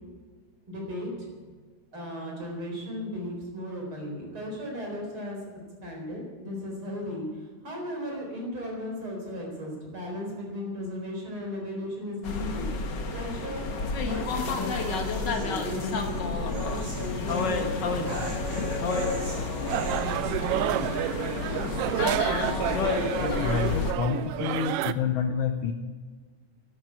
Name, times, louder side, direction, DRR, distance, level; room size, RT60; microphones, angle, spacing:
voice 1, 0.7-1.3 1.9-5.4 5.8-12.6 13.1-18.2, left 1 dB, 45° right, 0 dB, 5.0 m, -36 dB
sound 1, 12.2-23.9, left 4 dB, 50° left, 1.5 m, -30 dB
sound 2, 13.7-20.1, right 1 dB, 70° right, 4.9 m, -38 dB
sound 3, 19.7-24.9, right 12 dB, 90° right, 1.3 m, -29 dB
voice 2, 23.2-25.7, left 7 dB, 85° left, 6 dB, 1.1 m, -28 dB
12.0 x 12.0 x 8.6 m, 1.5 s
omnidirectional pair, 3.3 m